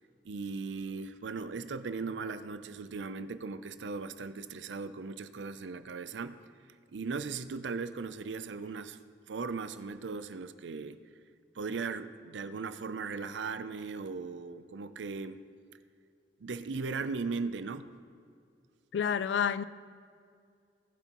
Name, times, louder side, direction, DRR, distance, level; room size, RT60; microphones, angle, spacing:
voice 1, 0.2-6.4 6.9-9.0 9.3-11.0 11.5-15.4 16.4-17.9, right 4 dB, 85° right, 0.5 m, -38 dB
voice 2, 18.9-19.6, left 7 dB, 75° left, 0.4 m, -29 dB
18.5 x 8.1 x 3.0 m
head